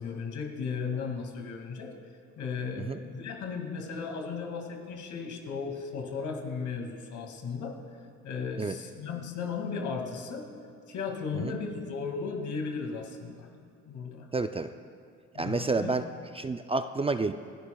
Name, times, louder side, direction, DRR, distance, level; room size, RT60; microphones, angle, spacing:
voice 1, 0.0-1.9 2.4-7.8 8.2-10.5 10.9-13.5 13.9-14.3 15.3-15.9, left 5 dB, 75° left, 2 dB, 2.3 m, -35 dB
voice 2, 14.3-14.7 15.4-16.1 16.3-17.3, right 3 dB, 20° right, 9 dB, 0.4 m, -29 dB
29.0 x 11.5 x 2.3 m, 2.4 s
cardioid pair, 90°, 30 cm